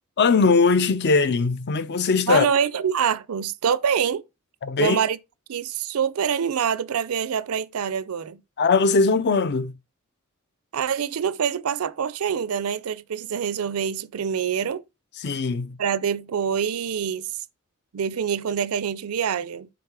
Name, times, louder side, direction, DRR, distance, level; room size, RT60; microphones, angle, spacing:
voice 1, 0.2-2.5 4.6-5.0 8.6-9.7 15.2-15.8, left 4 dB, 50° left, 0.5 m, -20 dB
voice 2, 2.3-4.2 4.8-5.2 5.5-8.4 10.7-14.8 15.8-17.3 17.9-19.7, right 7 dB, 85° right, 0.5 m, -25 dB
6.8 x 3.7 x 4.7 m
head